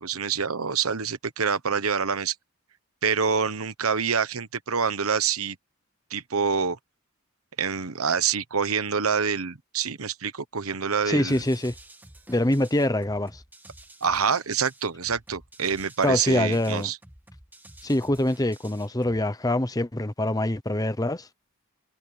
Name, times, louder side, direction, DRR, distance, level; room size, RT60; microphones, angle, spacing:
voice 1, 0.0-2.3 3.0-5.6 6.1-6.8 7.6-11.4 14.0-17.0, right 6 dB, 85° right, 1.1 m, -26 dB
voice 2, 11.1-11.7 12.3-13.4 16.0-16.9 17.8-21.3, left 1 dB, 15° left, 0.9 m, -24 dB
sound 1, 11.3-19.3, right 1 dB, 10° right, 1.5 m, -50 dB
head